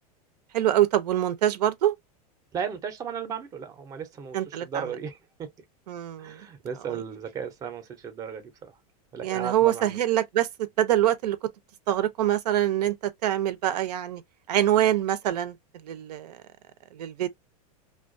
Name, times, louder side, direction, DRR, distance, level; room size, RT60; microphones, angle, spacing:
voice 1, 0.5-2.0 4.3-5.0 5.9-6.5 6.7-7.0 9.2-10.5 10.8-11.5 11.9-14.2 14.5-15.6 15.8-16.4 16.9-17.3, right 12 dB, 90° right, 0.5 m, -25 dB
voice 2, 2.5-5.5 6.2-8.7 9.1-10.0, right 7 dB, 20° right, 0.5 m, -35 dB
2.3 x 2.2 x 2.4 m
supercardioid pair, 150°, 20 cm